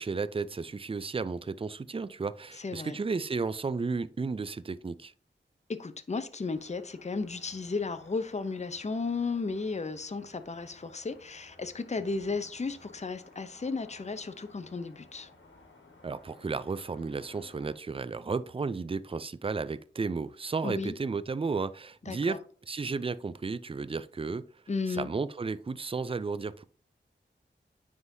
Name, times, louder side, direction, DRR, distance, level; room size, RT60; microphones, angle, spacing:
voice 1, 0.0-5.1 16.0-22.4 22.7-24.5 24.9-26.6, right 4 dB, 30° right, 0.4 m, -33 dB
voice 2, 2.6-3.0 5.7-15.3 20.6-20.9 22.0-22.4 24.7-25.1, left 4 dB, 35° left, 0.6 m, -34 dB
sound 1, 6.4-17.7, left 2 dB, 85° left, 1.4 m, -56 dB
9.5 x 3.7 x 2.7 m
wide cardioid pair, 45°, 20 cm